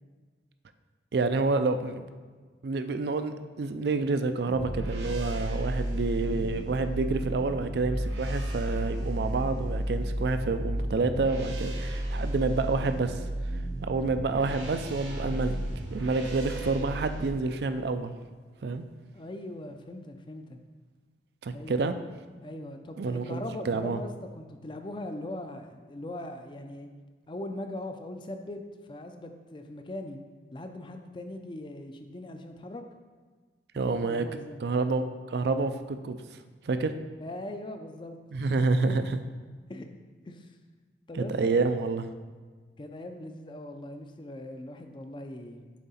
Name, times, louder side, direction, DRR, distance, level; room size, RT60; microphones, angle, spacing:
voice 1, 1.1-2.1 2.6-13.2 13.8-18.1 18.6-18.8 21.4-21.9 23.0-23.4 23.7-24.0 33.7-34.2 34.6-36.2 36.6-36.9 38.3-39.2 41.1-42.1, right 3 dB, 65° right, 9 dB, 0.4 m, -28 dB
sound 1, 4.5-17.3, right 1 dB, 85° right, 0.9 m, -33 dB
voice 2, 19.1-20.6 21.5-21.8 22.4-26.9 27.3-28.6 28.9-30.2 30.5-32.8 33.7-34.6 37.2-38.6 38.8-39.0 39.7-39.9 40.2-40.6 41.1-41.5 42.8-45.7, left 1 dB, 25° left, 6 dB, 0.4 m, -40 dB
7.3 x 3.9 x 4.2 m, 1.5 s
head